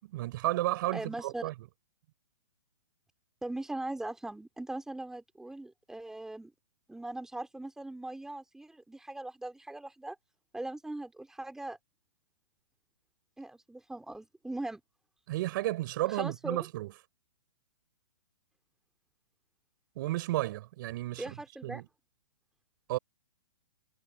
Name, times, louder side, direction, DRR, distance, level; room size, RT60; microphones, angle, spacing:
voice 1, 0.0-1.5 15.3-16.9 19.9-21.3 21.6-21.8 22.9-23.0, right 17 dB, 45° right, 6.3 m, -32 dB
voice 2, 0.9-1.5 3.4-6.5 6.9-10.2 10.5-11.8 13.4-14.8 16.0-16.7 21.2-21.8, right 2 dB, 5° right, 3.3 m, -40 dB
hypercardioid pair, 145°, 15 cm